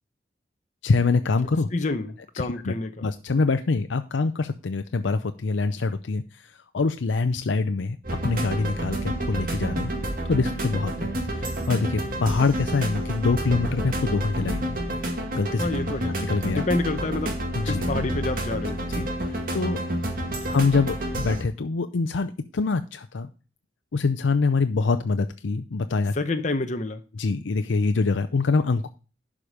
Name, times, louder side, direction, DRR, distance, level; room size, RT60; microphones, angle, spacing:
voice 1, 0.8-1.7 2.4-2.7 3.0-9.9 10.2-14.8 15.3-15.7 16.1-16.6 17.5-17.8 18.9-19.8 20.5-23.3 23.9-26.1 27.1-28.9, left 4 dB, 80° left, 0.5 m, -25 dB
voice 2, 1.7-3.1 15.6-17.3 17.7-18.8 26.1-27.0, left 2 dB, 40° left, 0.8 m, -28 dB
sound 1, 8.0-21.4, right 1 dB, 50° right, 1.9 m, -29 dB
11.5 x 5.0 x 5.0 m
head